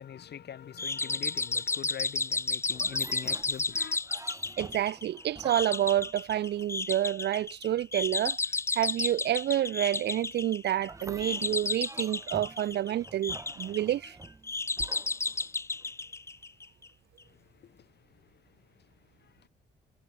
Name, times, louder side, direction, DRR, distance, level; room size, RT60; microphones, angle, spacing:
voice 1, 0.0-4.0 17.3-18.6 19.2-19.5, left 9 dB, 55° left, 1.7 m, -44 dB
sound 1, 0.8-16.9, left 3 dB, 15° left, 0.3 m, -33 dB
sound 2, 2.7-7.0 10.8-15.9, right 3 dB, 15° right, 0.8 m, -48 dB
voice 2, 4.6-8.4 8.8-14.1, right 12 dB, 60° right, 0.5 m, -29 dB
cardioid pair, 90°, 20 cm